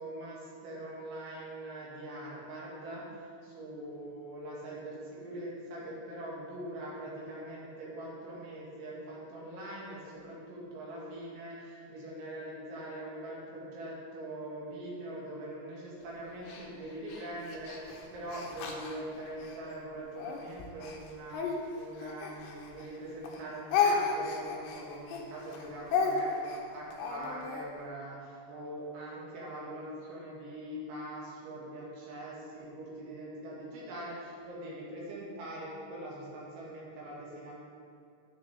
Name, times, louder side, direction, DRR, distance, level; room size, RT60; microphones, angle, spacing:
voice 1, 0.0-37.5, right 1 dB, 70° right, -6 dB, 4.4 m, -42 dB
Speech, 16.5-19.6 20.2-23.0 23.2-27.7, left 5 dB, 75° left, 2.9 m, -33 dB
10.0 x 9.8 x 3.5 m, 2.4 s
omnidirectional pair, 5.8 m